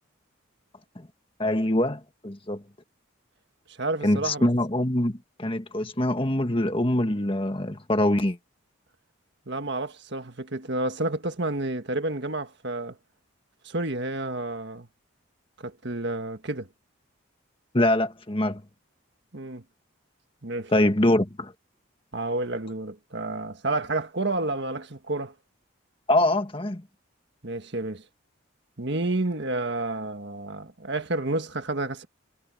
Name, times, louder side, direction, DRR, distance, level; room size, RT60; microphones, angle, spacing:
voice 1, 1.4-2.6 4.0-8.4 17.7-18.6 20.7-21.5 26.1-26.8, left 1 dB, 25° left, 1.6 m, -24 dB
voice 2, 3.8-4.5 9.5-12.9 13.6-14.9 15.6-16.7 19.3-19.6 20.4-20.7 22.1-25.3 27.4-28.0 28.8-32.1, right 2 dB, 55° right, 1.7 m, -30 dB
head